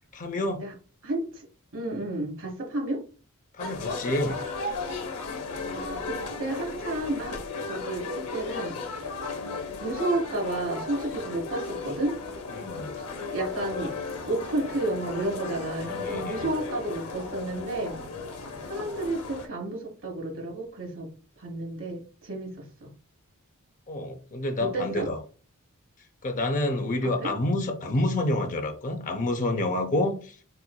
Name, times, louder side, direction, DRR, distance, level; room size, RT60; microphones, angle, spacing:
voice 1, 0.1-0.6 3.5-4.4 12.5-12.9 15.8-16.5 23.9-25.2 26.2-30.4, left 1 dB, 35° left, 0.7 m, -28 dB
voice 2, 1.0-1.4 1.7-3.0 5.6-7.4 7.6-8.8 9.8-12.1 13.3-13.9 14.3-18.0 18.7-21.1 21.4-22.5 22.8-22.9 24.6-25.1 27.0-27.3, right 2 dB, 60° right, 1.2 m, -31 dB
sound 1, 3.6-19.5, left 3 dB, 85° left, 0.7 m, -35 dB
4.3 x 2.6 x 2.2 m
head